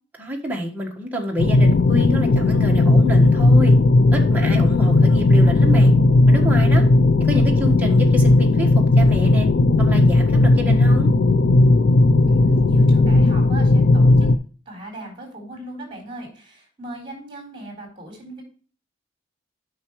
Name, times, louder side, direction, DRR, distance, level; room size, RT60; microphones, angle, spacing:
voice 1, 0.2-3.7 4.1-5.9 6.3-6.8 7.3-9.5 9.8-11.1, equal, 10° right, -1 dB, 1.4 m, -27 dB
sound 1, 1.4-14.4, left 2 dB, 50° left, 0.4 m, -15 dB
voice 2, 12.3-14.3 14.7-18.4, right 1 dB, 30° right, 1 dB, 3.9 m, -38 dB
8.7 x 5.9 x 3.1 m, 0.39 s
head